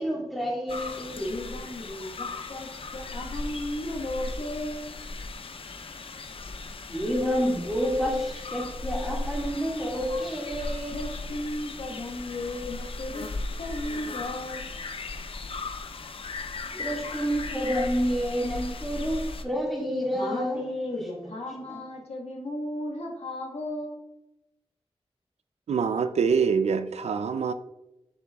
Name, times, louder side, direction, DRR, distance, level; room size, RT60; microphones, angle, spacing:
voice 1, 0.0-1.2 6.9-11.0 16.8-21.1 21.7-21.8, equal, ahead, 2.0 m, -29 dB
sound 1, 0.7-19.4, left 3 dB, 60° left, 0.6 m, -37 dB
voice 2, 1.2-5.0 6.4-6.5 10.9-13.3 13.6-14.7 16.7-16.8 20.1-24.1, left 1 dB, 80° left, 1.4 m, -35 dB
voice 3, 25.7-27.5, right 6 dB, 85° right, 0.4 m, -25 dB
7.5 x 7.0 x 2.3 m
wide cardioid pair, 105°, 11 cm